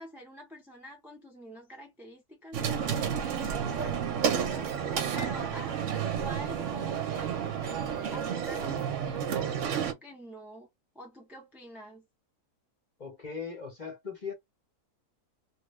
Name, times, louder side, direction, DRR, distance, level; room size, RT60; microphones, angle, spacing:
voice 1, 0.0-7.6 8.1-10.7 10.9-12.1, equal, ahead, 0.5 m, -47 dB
sound 1, 2.5-9.9, right 8 dB, 60° right, 0.9 m, -31 dB
voice 2, 13.0-14.3, left 5 dB, 35° left, 0.8 m, -39 dB
3.2 x 2.3 x 3.1 m
omnidirectional pair, 1.7 m